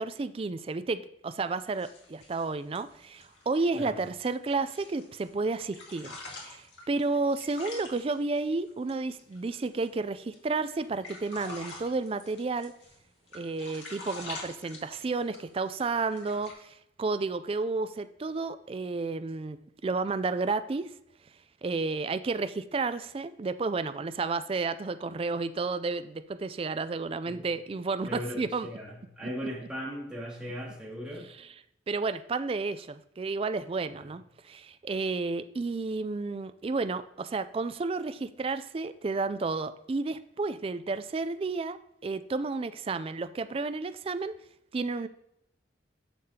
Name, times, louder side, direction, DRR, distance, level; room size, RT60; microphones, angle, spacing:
voice 1, 0.0-12.7 13.3-20.9 21.6-28.7 31.9-34.2 34.5-44.4 44.7-45.1, right 3 dB, 30° right, 12 dB, 0.3 m, -31 dB
sound 1, 1.5-5.3 5.6-9.9 10.2-10.4 10.7-13.0 13.3-15.6 15.9-16.5, left 2 dB, 85° left, 2.0 m, -46 dB
voice 2, 28.0-31.3 33.9-34.1, equal, 5° right, -5 dB, 2.2 m, -38 dB
10.0 x 6.7 x 2.8 m, 0.77 s
head